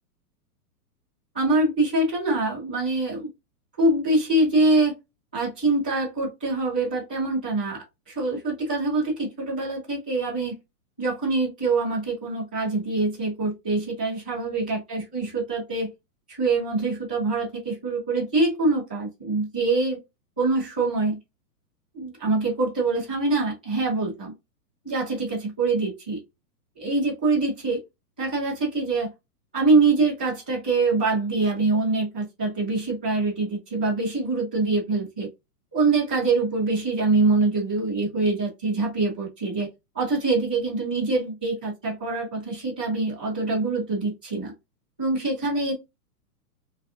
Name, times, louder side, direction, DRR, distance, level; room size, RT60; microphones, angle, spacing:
voice 1, 1.3-3.3 3.8-4.9 5.3-10.5 11.0-15.9 16.3-20.0 20.4-21.2 21.9-24.3 24.8-26.2 26.8-27.8 28.2-29.1 29.5-35.3 35.7-39.7 39.9-44.5 45.0-45.7, right 3 dB, 5° right, -12 dB, 0.5 m, -24 dB
4.8 x 2.6 x 2.6 m, 0.22 s
hypercardioid pair, 175°, 47 cm